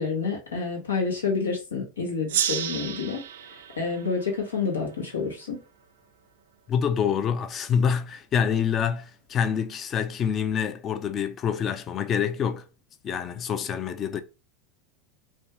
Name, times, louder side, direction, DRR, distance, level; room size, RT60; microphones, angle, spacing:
voice 1, 0.0-3.2 3.8-5.6, left 5 dB, 85° left, 1.0 m, -28 dB
Gong, 2.3-5.4, right 10 dB, 70° right, 0.3 m, -32 dB
voice 2, 6.7-12.7 13.0-14.2, left 7 dB, 35° left, 0.4 m, -26 dB
2.6 x 2.3 x 3.2 m
hypercardioid pair, 90°, 0 cm